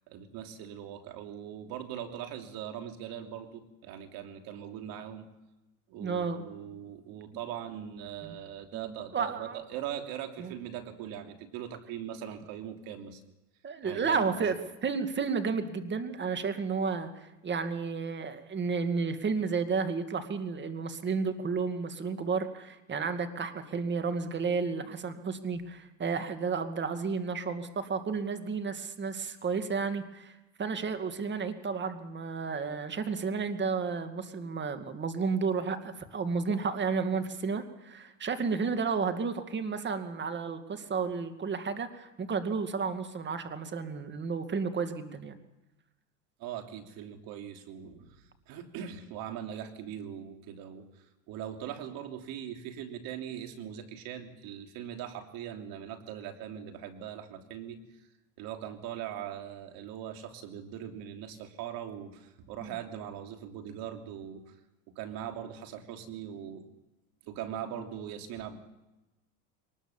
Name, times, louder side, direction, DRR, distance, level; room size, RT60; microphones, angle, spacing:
voice 1, 0.0-5.3 5.9-13.2 13.8-14.5 46.4-57.8 58.4-64.5 64.9-66.7 67.2-68.6, right 10 dB, 65° right, 6 dB, 3.2 m, -41 dB
voice 2, 6.0-6.5 8.2-8.4 8.7-9.6 10.4-10.5 13.6-14.6 14.8-45.4 62.6-62.7, right 5 dB, 30° right, 8 dB, 2.3 m, -32 dB
23.0 x 20.0 x 7.3 m, 1.0 s
supercardioid pair, 115°, 39 cm